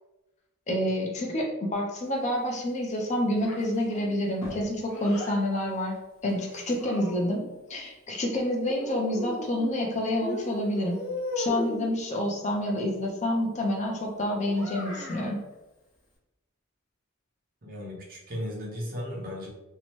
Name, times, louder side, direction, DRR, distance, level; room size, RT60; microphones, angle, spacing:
voice 1, 0.7-5.9 6.2-7.4 7.7-11.0 11.4-15.4, left 1 dB, 35° left, 0 dB, 0.4 m, -28 dB
Child speech kid speaking, 3.4-5.4 6.3-7.5 8.7-9.8 10.2-11.9 14.5-15.3, left 1 dB, 70° left, 1.0 m, -37 dB
voice 2, 17.6-19.5, equal, 45° right, -4 dB, 0.8 m, -36 dB
2.8 x 2.1 x 2.9 m, 1.0 s
head